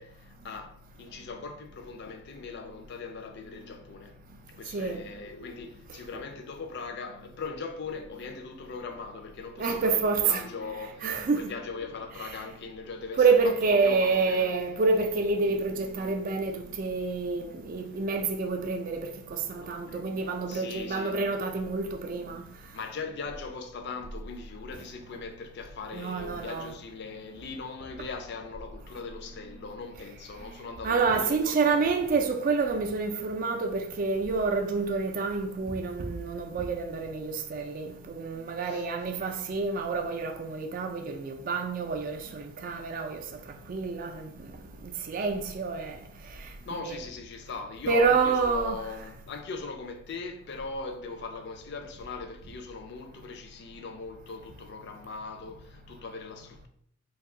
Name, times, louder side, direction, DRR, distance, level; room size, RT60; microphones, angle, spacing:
voice 1, 0.0-4.2 4.5-14.6 17.9-18.1 19.6-20.0 20.5-21.2 22.7-31.9 38.6-38.9 46.7-56.7, left 4 dB, 55° left, 0.4 m, -40 dB
voice 2, 9.6-10.4 11.0-11.5 13.2-19.0 19.5-22.4 25.9-26.7 30.8-43.2 43.7-44.3 45.1-45.9 46.7-47.0 47.9-48.8, right 4 dB, 40° right, 0.3 m, -28 dB
2.6 x 2.3 x 3.6 m
head